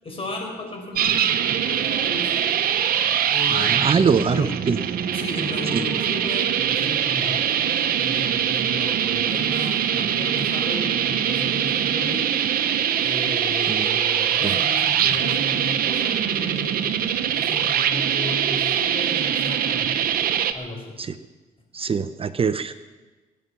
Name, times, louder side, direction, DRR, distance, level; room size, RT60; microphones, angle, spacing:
voice 1, 0.0-2.5 3.3-4.6 5.1-12.2 13.0-16.8 17.3-19.9 20.5-21.0, left 1 dB, 40° left, 1 dB, 4.8 m, -34 dB
sound 1, 1.0-20.5, right 9 dB, 75° right, 0.9 m, -23 dB
voice 2, 3.5-4.8 5.7-5.8 13.7-13.9 14.4-14.6 21.0-21.1 21.7-22.7, right 6 dB, 40° right, 12 dB, 0.6 m, -23 dB
22.0 x 9.3 x 5.8 m, 1.2 s
cardioid pair, 85°, 15 cm